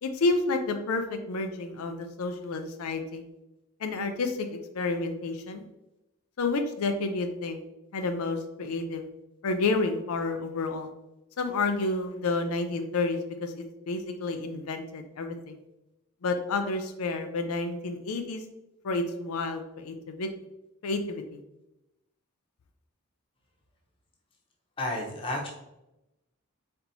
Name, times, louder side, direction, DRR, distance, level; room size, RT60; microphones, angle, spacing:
voice 1, 0.0-3.2 3.8-5.6 6.4-7.6 7.9-9.1 9.4-10.9 11.4-15.6 16.2-18.4 18.8-20.3 20.8-21.4, left 3 dB, 85° left, 6 dB, 0.5 m, -30 dB
voice 2, 24.8-25.5, left 1 dB, 25° left, -2 dB, 0.9 m, -31 dB
4.3 x 4.3 x 2.7 m, 0.93 s
head